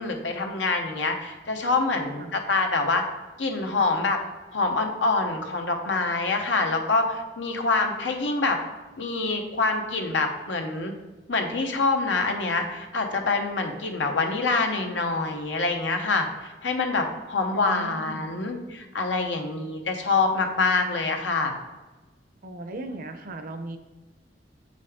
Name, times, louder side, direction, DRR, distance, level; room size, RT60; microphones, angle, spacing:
voice 1, 0.0-3.1 3.4-4.2 4.5-8.6 9.0-10.9 11.3-21.5, left 3 dB, 85° left, 4 dB, 0.9 m, -26 dB
voice 2, 17.5-18.3 22.4-23.8, right 2 dB, 50° right, 7 dB, 0.6 m, -37 dB
7.6 x 5.2 x 3.6 m, 1.1 s
head